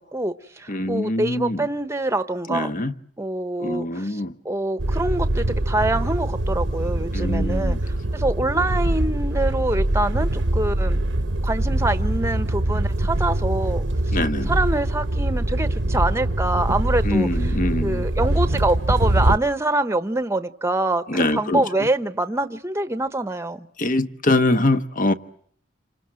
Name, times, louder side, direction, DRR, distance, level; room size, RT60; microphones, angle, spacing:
voice 1, 0.0-2.7 3.2-11.0 11.4-14.2 14.5-17.3 17.8-23.7, right 2 dB, 15° right, 1.1 m, -25 dB
voice 2, 0.7-1.7 2.5-2.9 3.6-4.3 7.1-7.8 14.1-14.6 17.0-18.1 21.1-21.9 23.8-25.1, left 2 dB, 45° left, 1.2 m, -23 dB
sound 1, 4.8-19.4, right 1 dB, 70° right, 1.1 m, -23 dB
28.5 x 25.5 x 7.7 m
head